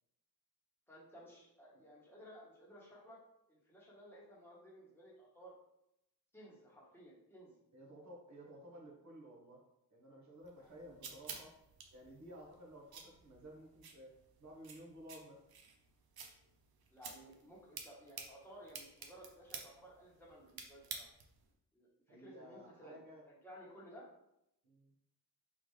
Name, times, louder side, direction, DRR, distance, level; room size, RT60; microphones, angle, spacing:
voice 1, 0.9-3.2 3.5-5.5 6.3-7.5 8.4-8.5 10.6-10.9 16.9-21.1 21.7-24.1, equal, 5° left, -6 dB, 1.2 m, -57 dB
voice 2, 7.7-9.6 9.9-11.5 11.9-14.1 14.4-15.4 22.1-23.2 24.6-24.9, equal, 50° right, -2 dB, 1.2 m, -54 dB
sound 1, 10.4-21.5, right 5 dB, 75° right, 0.7 m, -52 dB
3.7 x 3.5 x 3.2 m, 0.81 s
wide cardioid pair, 165°, 37 cm